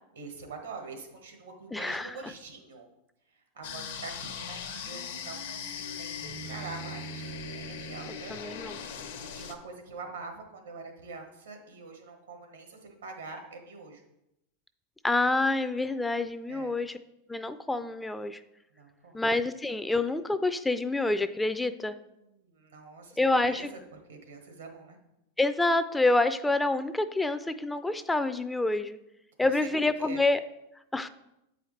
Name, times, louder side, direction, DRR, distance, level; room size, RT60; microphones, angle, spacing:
voice 1, 0.1-2.9 3.5-8.3 9.3-14.0 16.5-16.8 18.7-19.2 22.2-23.2 23.5-25.0 29.4-29.7 30.0-30.2, right 4 dB, 90° right, 4 dB, 1.4 m, -44 dB
voice 2, 1.7-2.2 8.3-8.8 9.4-9.5 15.0-17.0 17.3-18.4 19.1-22.0 23.2-23.7 25.4-29.0 29.4-30.4 30.9-31.1, left 2 dB, 10° left, 11 dB, 0.4 m, -27 dB
sound 1, 3.6-9.5, left 4 dB, 75° left, 0.9 m, -39 dB
8.3 x 4.9 x 3.2 m, 0.87 s
hypercardioid pair, 105°, 0 cm